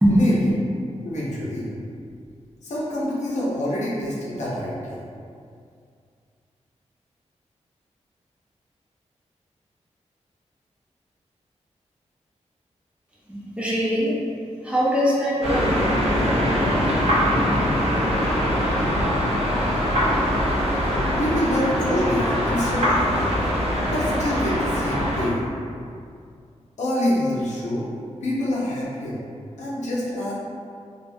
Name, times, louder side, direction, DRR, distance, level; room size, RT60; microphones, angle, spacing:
voice 1, 0.1-0.5 1.0-1.7 2.6-5.0 21.2-23.3 23.8-25.4 26.8-27.9 28.2-29.2 29.6-30.3, left 1 dB, 75° left, -6 dB, 0.6 m, -26 dB
voice 2, 13.3-14.2 14.6-15.7, equal, 10° right, -7 dB, 0.5 m, -21 dB
sound 1, 15.4-25.3, equal, 55° right, 0.6 m, -22 dB
2.3 x 2.0 x 2.6 m, 2.3 s
wide cardioid pair, 120°, 12 cm